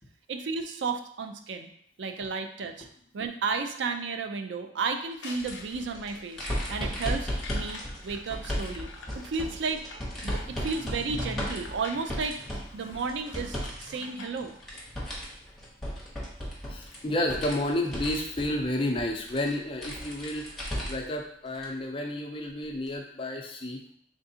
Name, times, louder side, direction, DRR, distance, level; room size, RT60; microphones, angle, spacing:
voice 1, 0.3-1.7 2.0-2.9 3.1-9.8 10.2-12.4 12.7-14.5, right 4 dB, 80° right, 5 dB, 0.4 m, -33 dB
sound 1, 4.9-14.7, left 3 dB, 85° left, 0.6 m, -48 dB
sound 2, 5.3-13.8 14.1-21.1 21.5-21.7 22.9-23.0, equal, ahead, 1.0 m, -35 dB
voice 2, 10.2-10.6 16.7-23.8, left 1 dB, 30° left, 2 dB, 0.5 m, -31 dB
3.7 x 3.4 x 2.7 m, 0.66 s
head